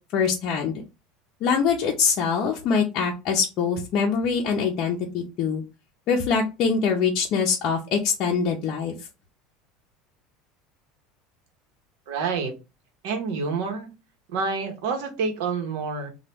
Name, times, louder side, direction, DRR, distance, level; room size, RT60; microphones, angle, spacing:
voice 1, 0.1-0.7 1.4-5.6 6.1-8.9, left 6 dB, 50° left, 0 dB, 0.5 m, -23 dB
voice 2, 12.1-12.5 13.0-13.9 14.3-16.1, right 5 dB, 75° right, 5 dB, 0.9 m, -28 dB
2.9 x 2.2 x 3.3 m, 0.28 s
supercardioid pair, 130°, 0 cm